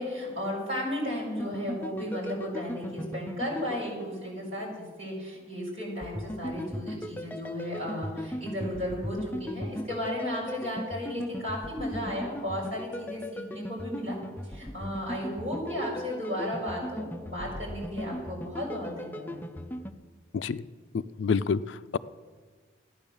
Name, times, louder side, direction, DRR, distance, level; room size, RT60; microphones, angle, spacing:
voice 1, 0.0-14.2 14.4-19.4, left 1 dB, 30° right, -4 dB, 5.4 m, -34 dB
sound 1, 1.4-4.7 6.0-19.9, equal, 10° left, 0.5 m, -38 dB
voice 2, 21.2-22.0, left 5 dB, 70° left, 15 dB, 0.4 m, -28 dB
14.0 x 9.7 x 7.0 m, 1.5 s
head